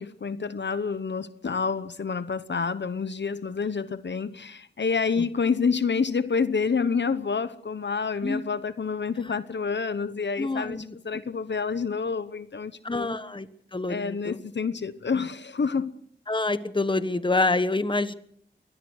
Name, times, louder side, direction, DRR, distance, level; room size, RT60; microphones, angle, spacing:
voice 1, 0.0-13.1 13.9-15.9, left 5 dB, 70° left, 1.0 m, -28 dB
voice 2, 10.4-10.9 12.8-13.5 13.7-14.4 16.3-18.1, left 2 dB, 25° left, 1.2 m, -27 dB
23.5 x 19.0 x 6.4 m
wide cardioid pair, 70°, 19 cm